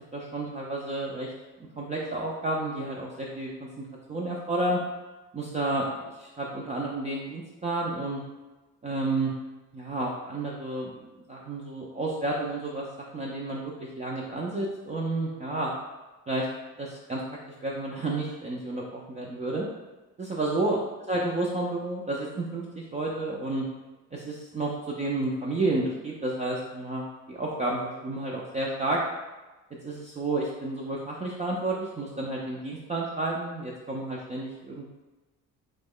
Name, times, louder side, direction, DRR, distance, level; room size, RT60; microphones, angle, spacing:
voice 1, 0.1-1.3 1.8-4.8 5.3-8.2 8.8-9.3 9.7-10.9 11.3-15.7 16.3-16.5 16.8-17.2 17.6-19.7 20.2-20.8 21.1-23.6 24.1-29.0 29.8-34.9, right 2 dB, 20° right, -3 dB, 0.3 m, -31 dB
2.9 x 2.1 x 3.6 m, 1.2 s
cardioid pair, 95°, 33 cm